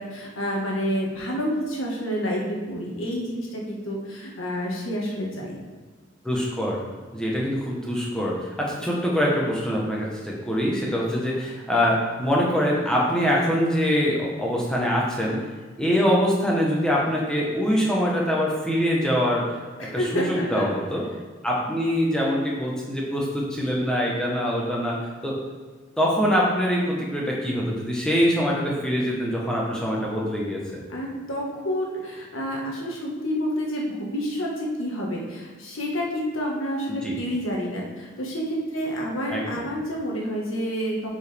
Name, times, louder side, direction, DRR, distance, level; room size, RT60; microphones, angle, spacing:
voice 1, 0.0-5.6 19.8-20.7 30.9-41.1, equal, 85° left, -2 dB, 1.6 m, -29 dB
voice 2, 6.2-6.8 7.1-15.5 15.8-21.0 21.4-25.0 25.2-25.3 26.0-30.8 37.0-37.2 39.3-39.6, equal, 5° left, -4 dB, 1.1 m, -24 dB
7.6 x 5.0 x 3.5 m, 1.4 s
head